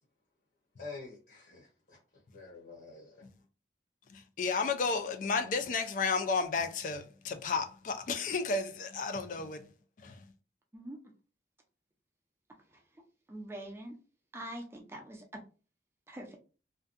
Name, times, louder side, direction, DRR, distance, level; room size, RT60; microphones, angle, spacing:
voice 1, 0.8-2.0 2.3-3.1, left 3 dB, 65° left, 0.8 m, -47 dB
voice 2, 4.4-9.6 10.0-10.1, left 4 dB, 45° left, 0.3 m, -32 dB
voice 3, 13.3-14.0 14.3-15.2 16.1-16.4, right 1 dB, 15° right, 0.4 m, -43 dB
2.6 x 2.2 x 2.4 m
head